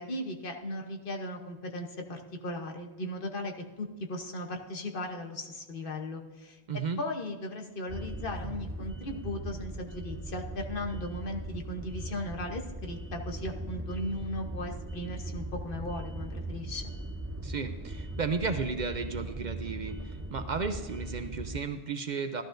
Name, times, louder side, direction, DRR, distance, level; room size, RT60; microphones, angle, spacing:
voice 1, 0.0-6.6 7.0-16.8, left 1 dB, 60° left, 3 dB, 1.2 m, -37 dB
voice 2, 6.7-7.0 17.4-22.4, right 5 dB, 50° right, 8 dB, 0.7 m, -34 dB
sound 1, 7.9-21.6, right 1 dB, 20° right, 0.3 m, -39 dB
14.5 x 12.0 x 2.6 m, 1.3 s
omnidirectional pair, 1.0 m